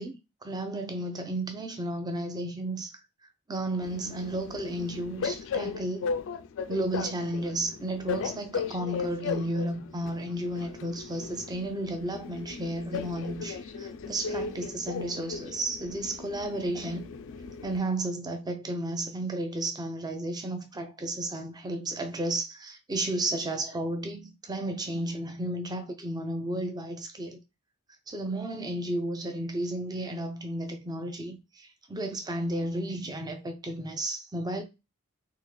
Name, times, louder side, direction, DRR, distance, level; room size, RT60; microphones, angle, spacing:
voice 1, 0.0-2.9 3.5-6.1 6.7-17.0 17.6-27.4 28.1-34.6, right 1 dB, 20° right, 0.6 m, -33 dB
Train, 3.8-17.8, left 5 dB, 60° left, 0.4 m, -37 dB
3.6 x 2.4 x 3.0 m
head